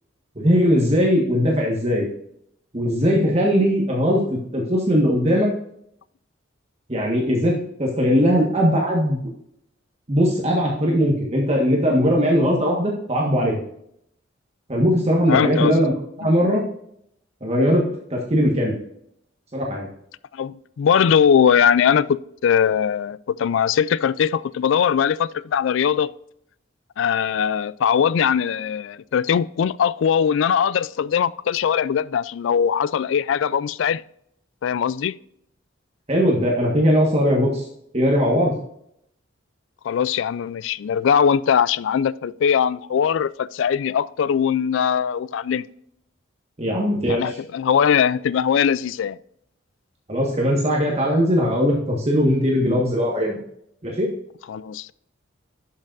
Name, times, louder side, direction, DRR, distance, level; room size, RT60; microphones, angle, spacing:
voice 1, 0.3-2.1 2.7-5.5 6.9-7.5 7.8-9.2 10.1-13.6 14.7-15.9 16.2-16.6 17.4-17.8 18.1-18.7 19.5-19.9 36.1-37.7 37.9-38.5 46.6-47.4 50.1-53.4 53.8-54.1, equal, 30° right, 1.4 m, -19 dB
voice 2, 15.3-15.8 20.3-26.1 27.0-34.0 34.6-35.1 39.8-45.6 47.1-49.2 54.5-54.9, left 7 dB, 70° left, 0.3 m, -20 dB
11.5 x 6.5 x 2.5 m
head